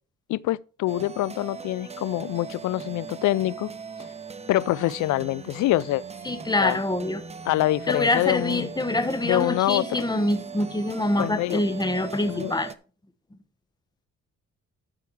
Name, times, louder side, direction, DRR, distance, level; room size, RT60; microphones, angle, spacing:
voice 1, 0.3-3.7 4.0-4.1 4.5-6.0 6.6-6.8 7.5-8.7 9.2-10.0 11.2-11.6 12.3-12.5, left 16 dB, 75° left, 0.5 m, -25 dB
sound 1, 0.9-12.8, right 6 dB, 20° right, 0.7 m, -40 dB
voice 2, 6.2-7.2 7.9-12.7, left 2 dB, 15° left, 1.3 m, -25 dB
12.5 x 4.7 x 4.7 m
cardioid pair, 90°, 30 cm